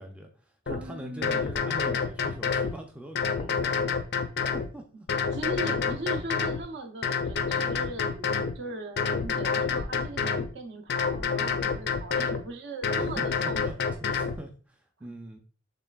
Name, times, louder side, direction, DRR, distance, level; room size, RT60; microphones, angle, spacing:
voice 1, 0.0-4.9 13.0-13.7 14.1-15.4, right 1 dB, 5° right, 2 dB, 0.4 m, -43 dB
sound 1, 0.7-0.8 1.2-2.7 3.1-4.7 5.1-6.6 7.0-8.5 9.0-10.5 10.9-12.4 12.8-14.4, left 5 dB, 50° left, 0.4 m, -28 dB
voice 2, 0.7-1.4 1.9-2.0 5.3-8.3 8.5-13.7 15.0-15.1, right 2 dB, 55° right, 6 dB, 0.6 m, -39 dB
6.7 x 3.3 x 2.3 m, 0.39 s
head